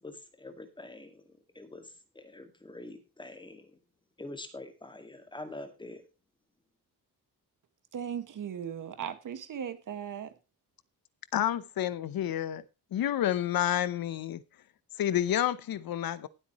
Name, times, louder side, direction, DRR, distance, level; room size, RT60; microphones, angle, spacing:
voice 1, 0.0-3.8 4.2-6.0, left 2 dB, 10° left, 1.9 m, -45 dB
voice 2, 7.9-10.3, right 8 dB, 55° right, 1.7 m, -37 dB
voice 3, 11.3-12.6 12.9-14.4 15.0-16.3, left 11 dB, 65° left, 0.8 m, -29 dB
18.5 x 8.2 x 3.0 m
wide cardioid pair, 180°, 38 cm